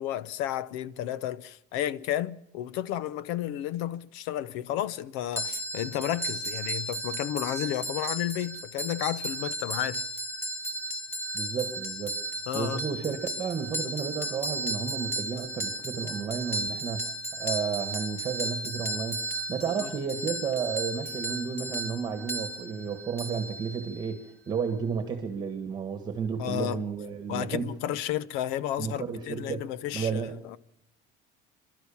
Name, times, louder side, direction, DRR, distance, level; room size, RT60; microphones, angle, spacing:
voice 1, 0.0-10.0 12.5-12.8 19.8-19.9 26.4-26.8 27.3-30.1 30.5-30.6, left 12 dB, 85° left, 1.0 m, -32 dB
sound 1, 5.4-24.1, right 1 dB, 10° left, 1.7 m, -35 dB
voice 2, 11.3-12.1 12.5-17.1 17.4-27.7 28.8-29.6 29.9-30.4, right 6 dB, 20° right, 1.6 m, -32 dB
28.5 x 12.5 x 7.1 m
cardioid pair, 180°, 21 cm